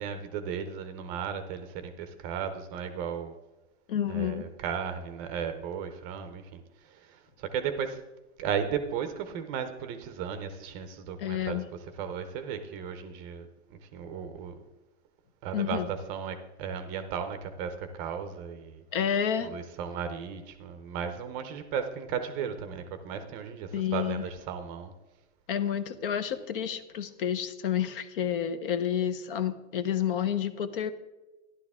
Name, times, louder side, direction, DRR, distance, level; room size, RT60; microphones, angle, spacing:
voice 1, 0.0-3.4 4.1-8.0 8.4-14.6 15.4-18.8 19.4-24.9, right 7 dB, 25° right, 9 dB, 0.7 m, -35 dB
voice 2, 3.9-4.5 11.2-11.7 15.5-15.9 18.9-19.5 23.7-24.2 25.5-30.9, left 9 dB, 50° left, 12 dB, 0.9 m, -30 dB
12.0 x 11.0 x 3.6 m, 1.1 s
hypercardioid pair, 155°, 35 cm